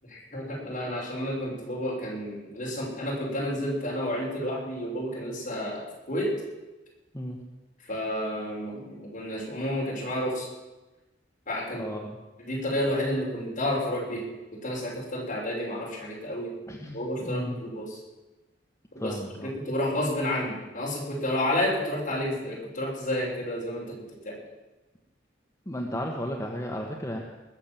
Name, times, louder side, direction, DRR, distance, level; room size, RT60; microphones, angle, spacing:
voice 1, 0.0-6.3 7.8-10.5 11.5-11.8 12.4-14.2 14.6-16.5 16.9-18.0 18.9-24.0 24.2-24.4, left 1 dB, 45° left, -4 dB, 5.6 m, -30 dB
voice 2, 11.8-12.2 16.7-17.6 19.0-19.5 25.7-27.2, equal, 15° left, 0 dB, 1.3 m, -34 dB
20.5 x 7.3 x 7.5 m, 1.1 s
head